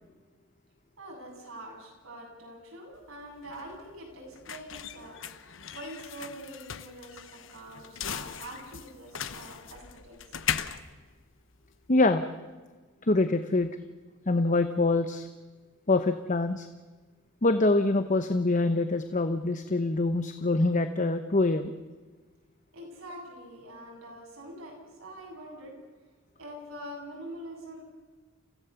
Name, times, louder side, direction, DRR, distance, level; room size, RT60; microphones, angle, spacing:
voice 1, 1.0-10.3 22.7-25.8 26.4-27.8, right 1 dB, 90° right, -1 dB, 7.7 m, -45 dB
sound 1, 2.9-12.0, left 8 dB, 65° left, 1.0 m, -38 dB
voice 2, 11.9-12.2 13.0-13.7 14.3-15.3 15.9-16.7 17.4-21.7, left 2 dB, 40° left, 9 dB, 0.9 m, -25 dB
29.5 x 16.0 x 7.0 m, 1.3 s
head